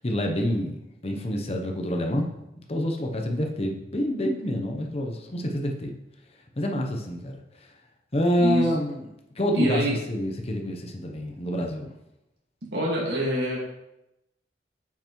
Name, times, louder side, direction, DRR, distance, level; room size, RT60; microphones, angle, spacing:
voice 1, 0.0-2.4 2.7-5.9 6.6-7.7 8.1-9.1 9.4-11.9, equal, 35° left, 2 dB, 0.8 m, -27 dB
voice 2, 9.5-10.0 12.7-13.6, right 1 dB, 80° right, -4 dB, 2.0 m, -25 dB
8.6 x 5.8 x 3.1 m, 0.90 s
head